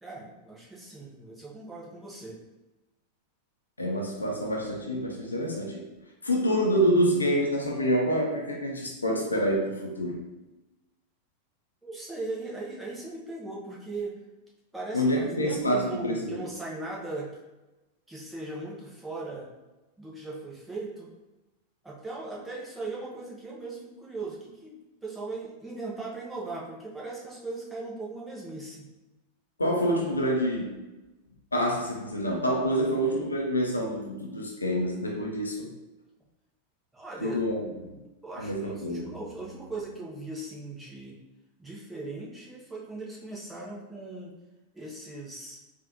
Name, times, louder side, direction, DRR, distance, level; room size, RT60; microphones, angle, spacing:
voice 1, 0.0-2.4 11.8-14.1 14.7-17.4 18.1-19.5 20.0-21.1 21.8-28.9 36.9-37.4 37.9-41.2 41.6-44.4 44.7-45.6, right 2 dB, 5° right, -5 dB, 1.0 m, -39 dB
voice 2, 3.8-5.8 6.2-10.2 14.9-16.4 29.6-30.7 31.5-35.7 37.2-37.6 38.4-39.1, equal, 80° left, 0 dB, 0.6 m, -27 dB
3.8 x 2.5 x 2.8 m, 1.1 s
figure-of-eight pair, 90°, 0 cm